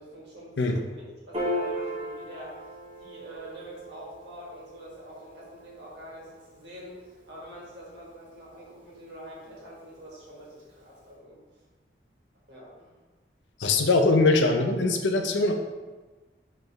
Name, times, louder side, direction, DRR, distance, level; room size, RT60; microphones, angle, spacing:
voice 1, 0.0-2.7 3.0-11.4 12.5-12.9, equal, 75° right, -5 dB, 1.5 m, -45 dB
Piano, 1.3-8.0, equal, 30° right, 1.3 m, -37 dB
voice 2, 13.6-15.5, left 3 dB, 90° left, 4 dB, 0.5 m, -22 dB
4.5 x 3.1 x 3.3 m, 1.3 s
head